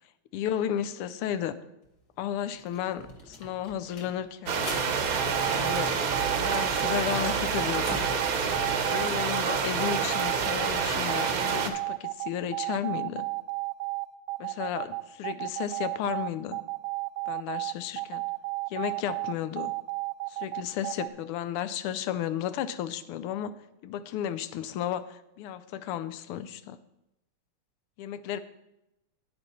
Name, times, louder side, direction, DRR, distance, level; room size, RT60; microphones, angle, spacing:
voice 1, 0.3-1.6 2.2-4.6 5.5-6.0 6.4-7.9 8.9-13.3 14.4-16.6 17.3-18.2 18.7-19.7 20.3-23.5 23.8-26.8 28.0-28.4, left 10 dB, 85° left, 13 dB, 1.5 m, -33 dB
sound 1, 1.8-1.9 2.2-6.1 6.4-8.3, left 2 dB, 50° left, 1.7 m, -43 dB
sound 2, 4.5-11.7, right 5 dB, 55° right, 1.0 m, -28 dB
sound 3, 5.2-21.1, right 25 dB, 80° right, 1.4 m, -33 dB
9.5 x 8.9 x 4.1 m, 0.88 s
omnidirectional pair, 2.4 m